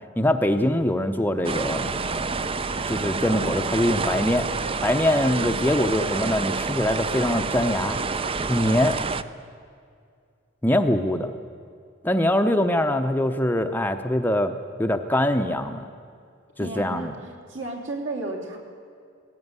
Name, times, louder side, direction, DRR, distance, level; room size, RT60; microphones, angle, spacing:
voice 1, 0.2-1.9 2.9-4.5 4.8-8.0 8.5-9.0 10.6-11.3 12.0-14.5 14.8-15.9 16.6-17.2, left 1 dB, 10° left, 6 dB, 0.7 m, -23 dB
sound 1, 1.4-9.2, right 4 dB, 30° right, 0.5 m, -28 dB
voice 2, 16.6-18.6, right 2 dB, 65° right, 1 dB, 3.1 m, -33 dB
18.0 x 16.0 x 9.6 m, 2.3 s
head